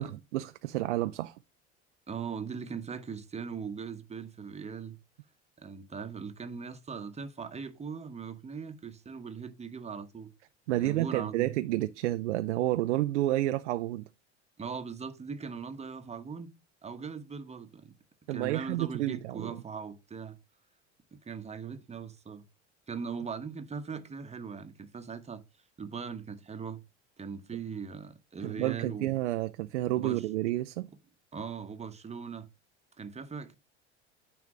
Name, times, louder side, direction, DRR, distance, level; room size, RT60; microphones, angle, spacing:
voice 1, 0.0-1.3 10.7-14.1 18.3-19.6 28.4-30.9, right 15 dB, 75° right, 0.5 m, -30 dB
voice 2, 2.1-5.0 5.6-10.3 10.7-11.6 14.6-16.6 16.8-17.9 18.3-20.4 21.1-22.4 22.9-25.4 25.8-26.8 27.2-29.1 30.0-30.3 31.3-32.5 33.0-33.6, right 6 dB, 20° right, 1.1 m, -40 dB
9.5 x 3.5 x 4.7 m
hypercardioid pair, 75°, 35 cm